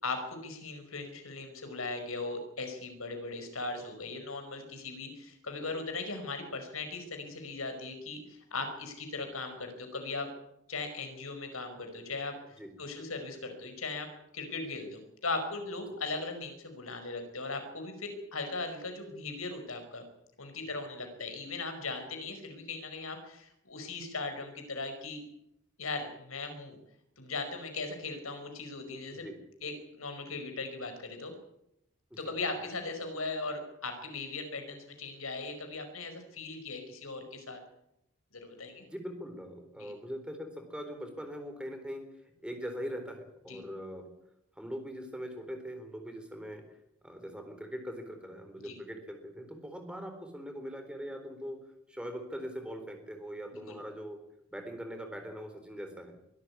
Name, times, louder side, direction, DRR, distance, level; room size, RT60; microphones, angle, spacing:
voice 1, 0.0-10.3 10.7-20.0 20.4-25.2 25.8-26.8 27.2-29.3 29.6-31.3 32.1-37.6 38.3-38.9 39.8-39.9 43.5-43.6 48.6-48.8 53.7-53.8, left 3 dB, 75° left, 6 dB, 5.1 m, -38 dB
voice 2, 38.8-42.0 42.4-44.1 44.6-46.6 47.0-51.6 51.9-54.2 54.5-56.2, equal, 5° right, 5 dB, 3.8 m, -41 dB
23.5 x 13.0 x 9.7 m, 0.81 s
head